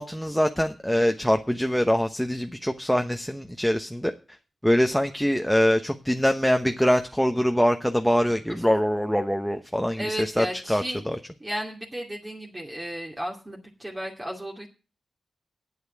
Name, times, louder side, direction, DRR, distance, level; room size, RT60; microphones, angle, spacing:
voice 1, 0.0-4.1 4.6-11.2, equal, ahead, 5 dB, 1.0 m, -24 dB
voice 2, 10.0-11.0 11.4-14.7, equal, 25° right, -2 dB, 2.4 m, -34 dB
8.8 x 8.0 x 7.2 m, 0.35 s
cardioid pair, 55°, 0 cm